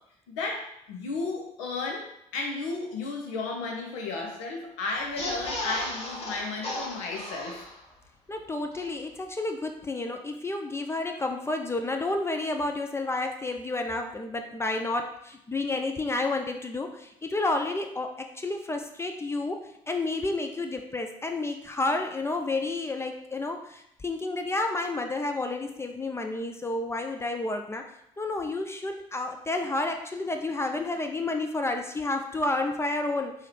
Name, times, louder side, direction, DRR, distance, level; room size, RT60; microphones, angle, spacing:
voice 1, 0.3-7.6, left 3 dB, 70° left, 1 dB, 0.6 m, -33 dB
sound 1, 5.0-8.0 8.4-8.5 8.7-8.8, left 1 dB, 35° left, 1.5 m, -35 dB
voice 2, 8.3-27.9 28.2-33.3, left 2 dB, 15° left, 4 dB, 0.4 m, -30 dB
3.7 x 2.7 x 3.1 m, 0.76 s
figure-of-eight pair, 50°, 17 cm